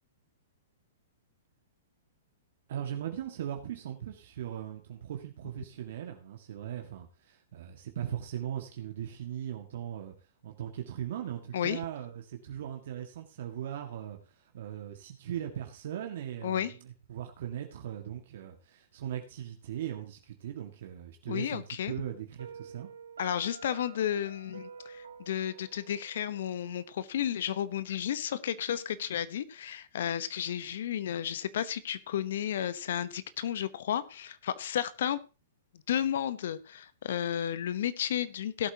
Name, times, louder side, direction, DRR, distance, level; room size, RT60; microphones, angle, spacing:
voice 1, 2.7-10.1 10.4-22.9, right 10 dB, 60° right, 3 dB, 1.8 m, -39 dB
voice 2, 16.4-16.7 21.3-21.9 23.2-35.2 35.9-38.7, left 10 dB, 65° left, 16 dB, 0.9 m, -32 dB
Piano, 22.4-27.3, right 6 dB, 85° right, 1.6 m, -49 dB
18.0 x 8.2 x 2.9 m, 0.31 s
hypercardioid pair, 120°, 0 cm